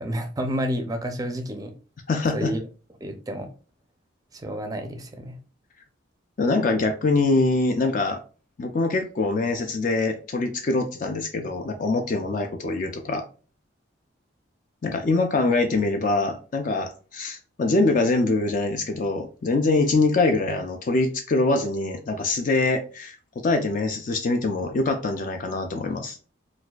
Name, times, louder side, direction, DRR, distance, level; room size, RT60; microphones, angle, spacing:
voice 1, 0.0-1.7 2.3-2.6 3.0-3.5 4.3-5.4, equal, 20° right, 5 dB, 0.4 m, -30 dB
voice 2, 2.1-2.5 6.4-8.2 8.6-13.2 14.8-23.2 23.4-26.2, left 3 dB, 45° left, 5 dB, 0.4 m, -24 dB
4.0 x 2.4 x 2.3 m, 0.36 s
head